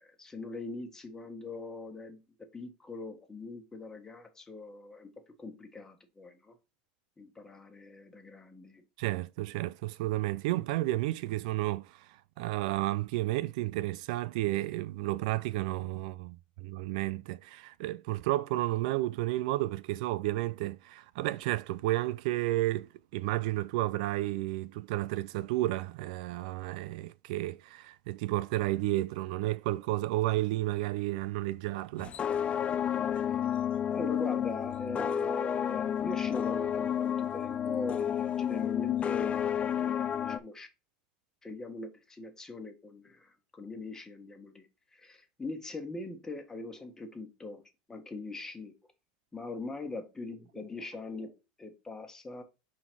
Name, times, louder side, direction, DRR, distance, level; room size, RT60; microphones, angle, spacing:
voice 1, 0.0-5.1 5.4-6.6 7.2-8.8 33.3-33.4 33.9-40.7 41.4-47.6 47.9-48.7 49.3-52.4, left 2 dB, 10° left, 1.5 m, -42 dB
voice 2, 9.0-32.2, right 17 dB, 70° right, 0.3 m, -32 dB
sound 1, 32.0-40.4, left 9 dB, 30° left, 0.5 m, -31 dB
5.7 x 4.1 x 4.6 m
supercardioid pair, 115°, 4 cm